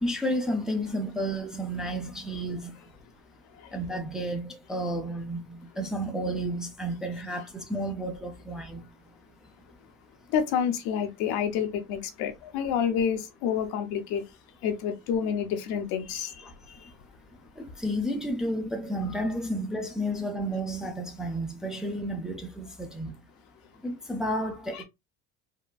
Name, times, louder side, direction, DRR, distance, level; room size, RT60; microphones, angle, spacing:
voice 1, 0.0-2.7 3.7-8.8 17.6-23.1 23.8-24.8, equal, ahead, 0.5 m, -31 dB
voice 2, 10.3-14.2 14.6-16.4 16.8-16.9 24.7-24.8, left 8 dB, 75° left, 0.9 m, -28 dB
3.7 x 2.1 x 2.2 m
cardioid pair, 120°, 37 cm